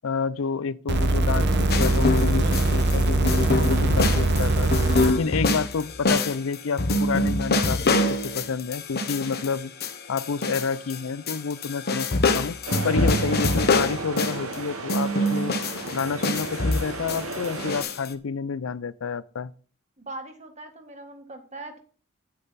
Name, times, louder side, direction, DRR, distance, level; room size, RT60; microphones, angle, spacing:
voice 1, 0.0-4.7 5.1-9.7 10.1-12.6 12.8-15.6 15.9-19.5, left 5 dB, 70° left, 0.5 m, -29 dB
sound 1, 0.9-5.1 6.1-6.2, right 2 dB, 55° right, 1.1 m, -22 dB
sound 2, 1.7-3.0 3.3-11.0 11.3-14.5 14.9-18.1, left 2 dB, 50° left, 1.0 m, -25 dB
sound 3, 12.7-17.8, right 3 dB, 80° right, 1.3 m, -34 dB
voice 2, 20.0-21.8, right 2 dB, 35° right, 1.8 m, -40 dB
8.8 x 8.6 x 4.1 m
head